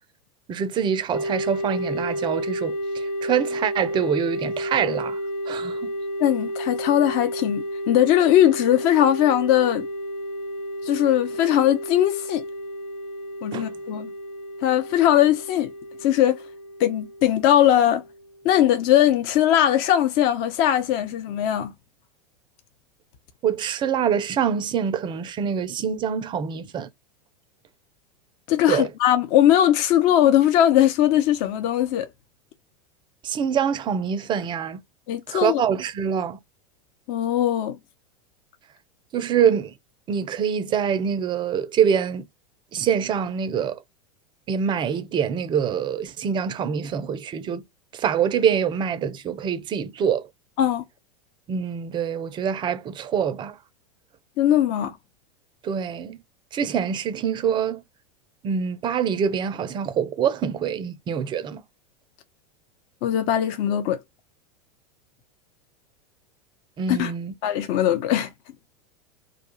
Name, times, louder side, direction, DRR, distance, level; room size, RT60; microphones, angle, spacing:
voice 1, 0.5-5.2 5.5-5.9 13.5-13.7 23.4-26.9 28.7-28.9 33.2-34.8 35.3-36.4 39.1-39.7 40.1-42.3 42.7-43.8 44.5-47.6 47.9-50.3 51.5-53.6 55.6-56.2 56.5-57.8 58.4-61.6 66.8-67.3, right 7 dB, 25° right, 0.4 m, -25 dB
sound 1, 1.1-18.5, equal, 85° left, 0.8 m, -32 dB
voice 2, 6.2-9.9 10.8-12.4 13.4-14.1 14.6-15.7 16.0-16.4 16.8-18.0 18.4-21.7 28.5-32.1 35.1-35.6 37.1-37.8 50.6-50.8 54.4-55.0 63.0-64.0 66.9-67.1 67.4-68.3, left 11 dB, 45° left, 0.4 m, -20 dB
2.3 x 2.2 x 2.8 m
figure-of-eight pair, 90°, 20 cm